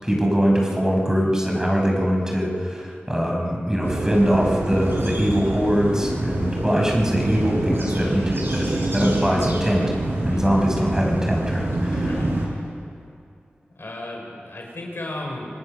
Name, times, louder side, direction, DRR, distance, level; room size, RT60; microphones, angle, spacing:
voice 1, 0.0-9.8 10.2-11.7, equal, 15° right, 0 dB, 5.3 m, -22 dB
sound 1, 3.8-12.5, right 1 dB, 70° right, 6.1 m, -26 dB
voice 2, 10.3-10.6 11.5-12.6 13.8-15.6, left 1 dB, 70° left, 0 dB, 5.3 m, -35 dB
26.0 x 19.5 x 6.5 m, 2.5 s
cardioid pair, 40°, 4 cm